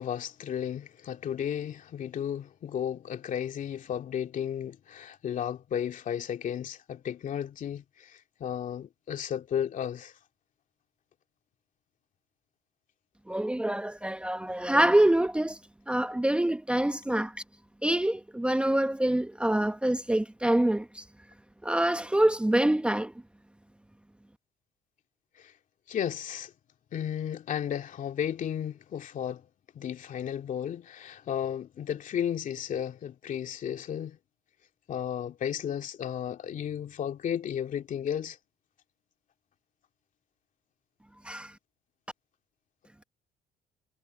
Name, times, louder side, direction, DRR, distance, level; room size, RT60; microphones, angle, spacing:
voice 1, 0.0-10.1 25.4-25.5 25.9-26.5 26.9-29.4 29.7-34.2 34.9-38.4, left 9 dB, 55° left, 2.5 m, -34 dB
voice 2, 13.3-15.6 15.9-17.3 17.8-21.0 21.6-23.1 41.3-41.5, right 1 dB, 5° right, 0.9 m, -25 dB
supercardioid pair, 85°, 16 cm